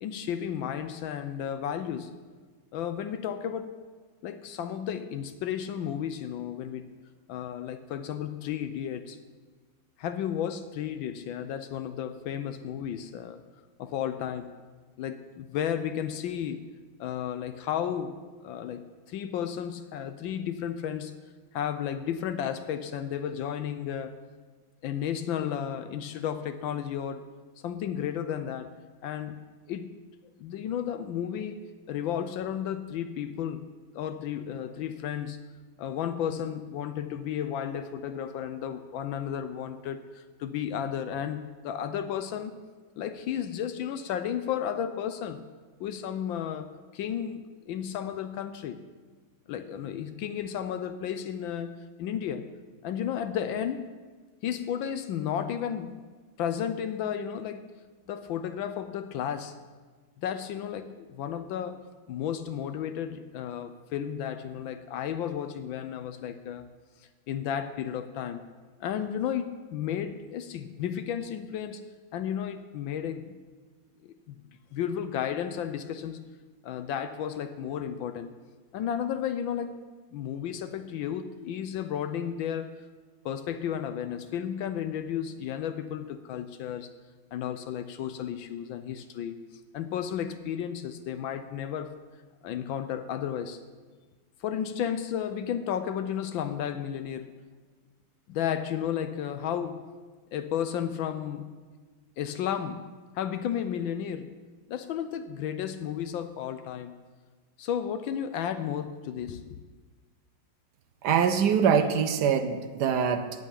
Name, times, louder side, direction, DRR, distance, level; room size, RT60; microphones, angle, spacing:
voice 1, 0.0-2.1 2.7-3.8 4.2-6.9 7.3-9.2 10.0-13.4 13.8-14.5 15.0-16.7 17.0-21.1 21.5-24.2 24.8-27.2 27.6-28.7 29.0-29.9 30.4-33.7 33.9-35.4 35.8-42.6 43.0-45.4 45.8-48.8 49.5-52.4 52.8-53.9 54.4-56.0 56.4-57.7 58.1-59.6 60.2-61.8 62.1-66.7 67.3-68.5 68.8-71.8 72.1-73.4 74.0-74.4 74.7-76.2 76.6-78.4 78.7-79.8 80.1-82.7 83.2-86.9 87.3-89.5 89.7-91.9 92.4-93.6 94.4-97.3 98.3-99.8 100.3-101.6 102.2-102.9 103.1-104.3 104.7-107.0 107.6-109.6, left 9 dB, 75° left, 10 dB, 1.3 m, -33 dB
voice 2, 111.0-113.4, right 7 dB, 65° right, 9 dB, 1.1 m, -24 dB
8.8 x 8.0 x 8.9 m, 1.4 s
omnidirectional pair, 2.3 m